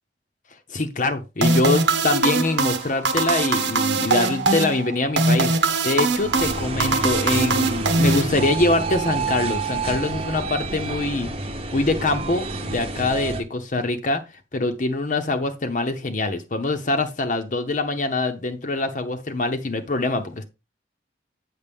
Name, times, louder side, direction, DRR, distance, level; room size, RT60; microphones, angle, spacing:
voice 1, 0.7-5.5 5.8-11.3 11.7-14.2 14.5-20.4, left 2 dB, 45° left, 0.8 m, -24 dB
sound 1, 1.4-8.8, right 3 dB, 85° right, 1.2 m, -22 dB
sound 2, 6.2-13.4, right 3 dB, 30° right, 1.0 m, -28 dB
8.3 x 6.3 x 3.5 m
head